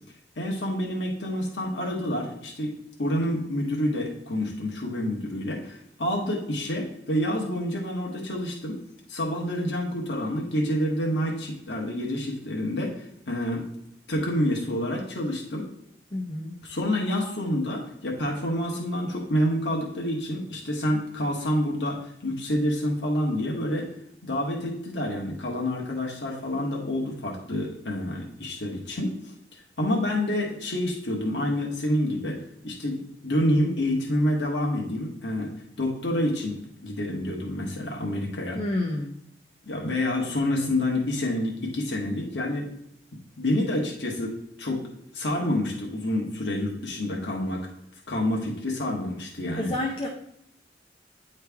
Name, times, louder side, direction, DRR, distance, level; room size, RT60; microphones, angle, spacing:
voice 1, 0.4-2.7 3.0-8.8 9.1-13.7 14.1-15.7 16.6-23.9 24.2-29.1 29.5-35.5 35.8-38.6 39.7-42.7 43.4-44.9 45.1-47.7 48.1-49.7, left 1 dB, 80° left, -1 dB, 1.2 m, -28 dB
voice 2, 16.1-16.6 38.6-39.2 49.5-50.1, left 1 dB, 30° left, 0 dB, 0.6 m, -29 dB
9.4 x 3.2 x 3.4 m, 0.75 s
head